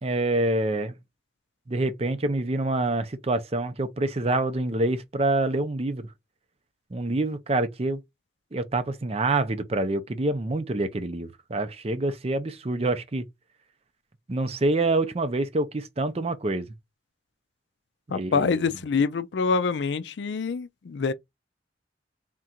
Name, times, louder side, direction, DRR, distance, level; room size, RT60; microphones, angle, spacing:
voice 1, 0.0-0.9 1.7-6.1 6.9-8.0 8.5-13.3 14.3-16.7 18.1-18.6, right 2 dB, 35° right, 0.6 m, -26 dB
voice 2, 18.1-21.1, left 5 dB, 70° left, 0.4 m, -26 dB
3.7 x 2.5 x 4.3 m
head